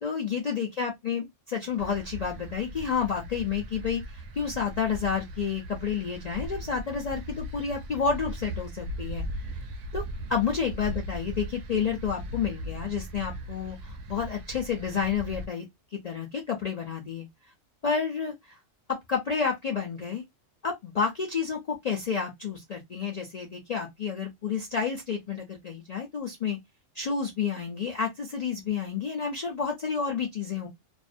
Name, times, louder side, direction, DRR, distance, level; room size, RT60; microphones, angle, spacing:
voice 1, 0.0-9.2 9.9-10.0 10.3-15.7 15.9-17.3 17.8-18.6 18.9-20.2 20.6-26.6 27.0-30.7, left 6 dB, 70° left, 0.3 m, -30 dB
sound 1, 1.8-15.5, right 1 dB, 75° right, 0.9 m, -38 dB
2.5 x 2.0 x 2.5 m
omnidirectional pair, 1.3 m